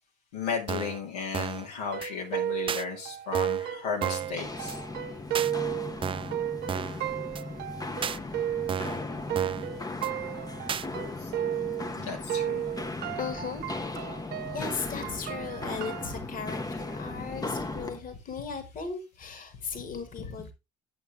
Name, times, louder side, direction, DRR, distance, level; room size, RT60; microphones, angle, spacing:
voice 1, 0.3-4.8 11.2-11.3 11.6-12.6, left 6 dB, 70° left, 2.1 m, -35 dB
sound 1, 0.7-1.0 1.3-1.7 2.0-2.1 2.7-2.8 3.3-3.7 4.0-4.3 4.7-4.8 5.3-5.5 6.0-6.3 6.7-7.0 7.3-7.4 8.0-8.2 8.7-9.0 9.3-9.7 10.0-10.1 10.7-10.9, right 7 dB, 25° right, 0.4 m, -33 dB
sound 2, 1.8-12.0 12.3-16.1, right 11 dB, 50° right, 0.8 m, -34 dB
Walk footsteps, 4.2-18.0, left 2 dB, 20° left, 1.0 m, -37 dB
voice 2, 13.2-13.7 14.1-20.5, left 5 dB, 40° left, 2.1 m, -37 dB
9.1 x 8.2 x 3.4 m
figure-of-eight pair, 50°, 21 cm